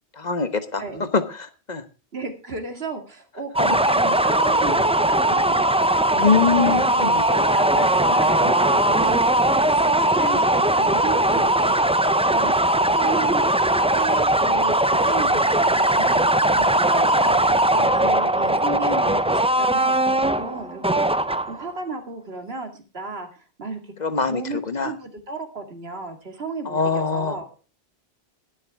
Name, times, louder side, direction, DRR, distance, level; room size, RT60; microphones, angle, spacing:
voice 1, 0.2-0.8 1.1-1.8 3.6-3.8 6.1-7.3 9.1-9.2 24.0-24.9 26.6-27.4, left 5 dB, 45° left, 1.3 m, -23 dB
voice 2, 2.1-6.2 6.5-11.8 12.2-12.5 13.0-16.3 16.5-20.0 20.4-21.0 21.5-23.9 24.3-27.5, right 3 dB, 70° right, 2.4 m, -34 dB
sound 1, 3.6-21.7, right 1 dB, 10° right, 0.4 m, -19 dB
21.5 x 7.2 x 3.5 m
omnidirectional pair, 1.1 m